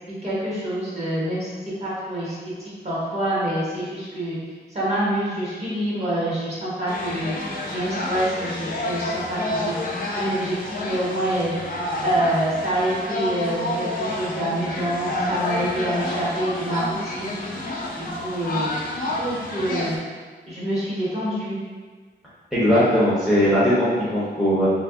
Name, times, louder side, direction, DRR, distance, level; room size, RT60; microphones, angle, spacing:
voice 1, 0.1-1.5 1.8-2.3 2.8-4.4 4.7-7.3 7.7-9.7 10.1-11.7 12.0-17.3 17.9-18.7 19.0-19.9 20.5-21.6, right 1 dB, 35° right, -8 dB, 1.2 m, -26 dB
sound 1, 6.9-20.0, left 1 dB, 55° left, 0.5 m, -29 dB
voice 2, 22.5-24.7, equal, ahead, -10 dB, 0.7 m, -19 dB
2.8 x 2.5 x 3.6 m, 1.5 s
wide cardioid pair, 155°, 18 cm